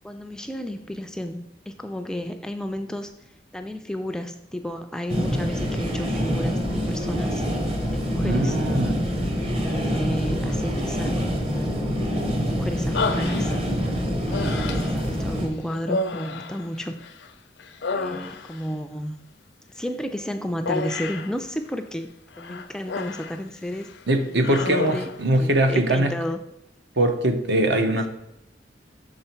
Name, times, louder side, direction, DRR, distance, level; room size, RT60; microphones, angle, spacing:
voice 1, 0.0-3.1 3.5-7.4 7.9-8.6 9.4-11.9 12.5-13.5 14.3-17.0 17.9-19.1 19.7-22.1 22.4-23.9 24.3-26.4 27.8-28.1, equal, 5° left, 7 dB, 0.3 m, -32 dB
sound 1, 5.1-15.5, equal, 35° right, 1.0 m, -25 dB
voice 2, 8.2-9.0 24.1-26.1 27.0-28.1, right 1 dB, 70° right, 6 dB, 0.8 m, -22 dB
Human voice, 12.9-13.8 14.3-15.0 15.8-17.3 17.6-18.7 20.7-21.3 22.4-23.4 23.7-24.0 24.4-25.2, left 3 dB, 85° left, 0.5 m, -30 dB
6.6 x 3.9 x 4.4 m, 0.85 s
head